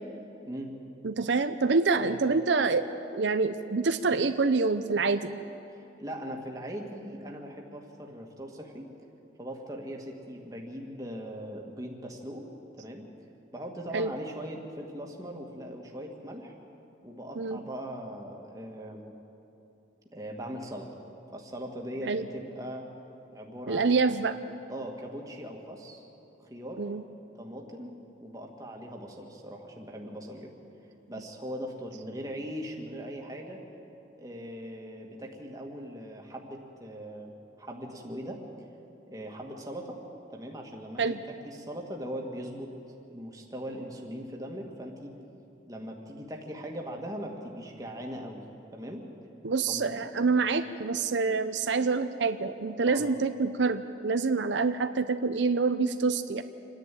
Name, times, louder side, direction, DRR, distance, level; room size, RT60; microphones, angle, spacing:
voice 1, 1.0-2.9 3.1-5.3 13.9-14.1 17.4-17.6 22.1-22.3 23.7-24.3 26.8-27.0 41.0-41.2 49.4-56.4, right 4 dB, 80° right, 10 dB, 0.7 m, -26 dB
voice 2, 6.0-8.9 9.4-12.5 12.7-13.1 13.5-16.5 17.0-19.1 20.1-20.9 21.3-22.9 23.3-23.9 24.7-26.0 26.4-26.8 27.4-27.9 28.2-30.5 31.1-33.6 34.2-38.4 39.1-40.0 40.3-41.0 41.4-42.7 43.0-45.1 45.7-48.4 48.7-49.0 49.7-50.1 52.8-53.0, equal, 20° right, 0 dB, 2.0 m, -40 dB
27.0 x 10.5 x 9.2 m, 2.9 s
head